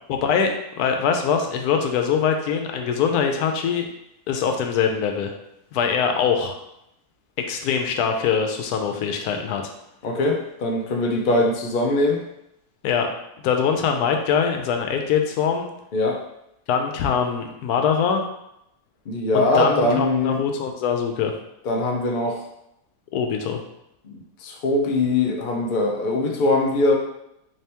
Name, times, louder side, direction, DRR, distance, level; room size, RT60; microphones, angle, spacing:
voice 1, 0.1-3.9 4.3-5.3 5.7-6.6 7.4-9.7 12.8-13.1 13.4-15.7 16.7-18.2 19.3-21.3 23.1-23.6, left 6 dB, 85° left, 4 dB, 1.1 m, -23 dB
voice 2, 10.0-12.2 15.9-16.2 19.1-20.4 21.6-22.4 24.0-26.9, left 2 dB, 60° left, 1 dB, 0.5 m, -22 dB
3.4 x 2.9 x 3.3 m, 0.81 s
omnidirectional pair, 1.6 m